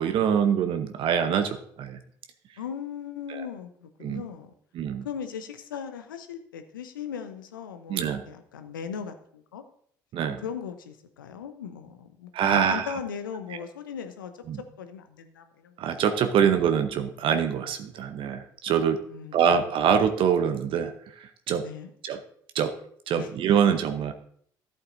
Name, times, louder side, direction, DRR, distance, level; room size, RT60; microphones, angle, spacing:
voice 1, 0.0-2.0 3.3-3.4 4.0-4.2 4.7-5.0 7.9-8.2 10.1-10.4 12.3-12.9 14.5-14.6 15.8-19.0 19.3-21.7 22.0-22.2 22.5-22.8 23.1-24.1, right 7 dB, 55° right, 8 dB, 0.8 m, -24 dB
voice 2, 2.6-4.5 5.0-9.6 10.4-15.7 16.4-16.5 19.1-19.4 21.6-21.9 23.2-23.3, left 7 dB, 80° left, 8 dB, 0.8 m, -38 dB
14.0 x 8.1 x 2.6 m, 0.63 s
figure-of-eight pair, 55°, 11 cm